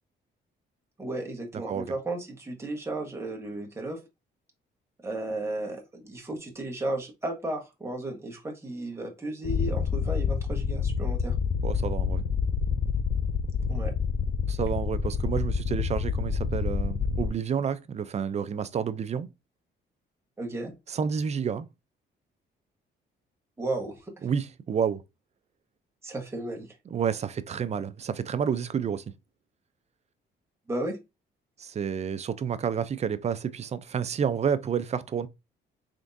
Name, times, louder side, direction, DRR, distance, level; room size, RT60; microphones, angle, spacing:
voice 1, 1.0-4.0 5.0-11.3 13.7-13.9 20.4-20.7 23.6-23.9 26.0-26.7 30.7-31.0, right 2 dB, 15° right, 1.2 m, -34 dB
voice 2, 1.5-1.9 11.6-12.3 14.5-19.3 20.9-21.7 24.2-25.0 26.9-29.0 31.6-35.3, right 7 dB, 35° right, 0.4 m, -29 dB
sound 1, 9.4-17.3, left 6 dB, 45° left, 0.5 m, -28 dB
3.7 x 3.5 x 2.6 m
cardioid pair, 90°, 20 cm